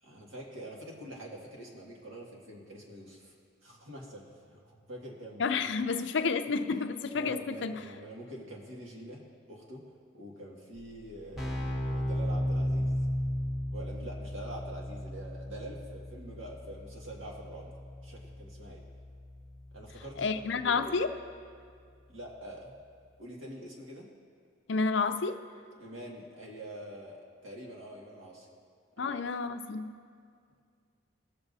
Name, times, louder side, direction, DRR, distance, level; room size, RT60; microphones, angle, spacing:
voice 1, 0.0-3.3 3.6-5.6 7.1-13.0 13.7-17.7 18.0-18.8 19.7-20.9 22.1-22.8 23.2-24.1 25.8-28.5 29.0-29.2, right 1 dB, 85° right, -3 dB, 2.0 m, -45 dB
voice 2, 5.4-7.8 20.2-21.1 24.7-25.4 29.0-29.9, left 4 dB, 65° left, 8 dB, 0.5 m, -30 dB
Keyboard (musical), 10.8-10.9 11.1-21.7, equal, ahead, 1.0 m, -36 dB
20.5 x 7.0 x 2.7 m, 2.2 s
head